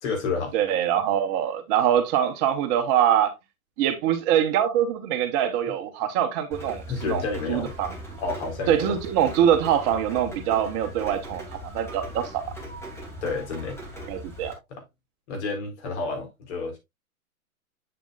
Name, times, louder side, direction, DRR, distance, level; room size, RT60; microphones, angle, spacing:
voice 1, 0.0-0.6 6.9-7.7 8.2-9.0 13.2-13.8 14.7-14.8 15.3-16.8, left 4 dB, 50° left, 4.0 m, -30 dB
voice 2, 0.5-3.3 3.8-7.2 7.5-7.9 8.7-12.4 14.1-14.5, right 10 dB, 35° right, 1.1 m, -24 dB
Rain, 6.5-14.5, equal, 5° left, 2.8 m, -39 dB
7.8 x 7.5 x 2.4 m
figure-of-eight pair, 110°, 42 cm